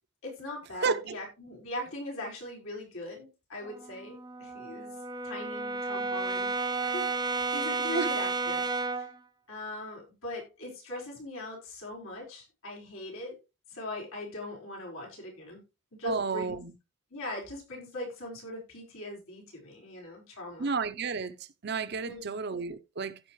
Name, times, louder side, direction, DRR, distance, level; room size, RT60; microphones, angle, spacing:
voice 1, 0.2-5.0 5.2-6.5 6.8-8.6 8.9-9.1 9.5-13.4 13.7-15.6 15.9-16.6 17.1-20.7 22.0-22.3, left 1 dB, 85° left, 4.7 m, -40 dB
voice 2, 0.8-1.2 7.9-8.1 16.0-16.7 20.6-21.4 21.6-23.2, right 4 dB, 50° right, 0.6 m, -31 dB
Brass instrument, 3.6-9.2, right 3 dB, 20° right, 0.6 m, -32 dB
16.0 x 5.4 x 3.1 m
head